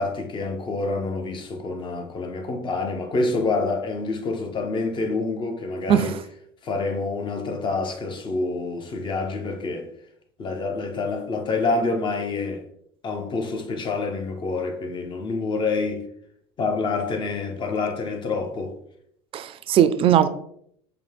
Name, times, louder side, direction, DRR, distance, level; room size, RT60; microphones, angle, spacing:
voice 1, 0.0-6.2 6.6-9.9 10.4-12.6 13.0-16.0 16.6-18.8, left 3 dB, 35° left, 0.9 m, -27 dB
voice 2, 19.3-20.3, right 10 dB, 40° right, 0.4 m, -19 dB
5.2 x 2.4 x 3.5 m
hypercardioid pair, 80°, 14 cm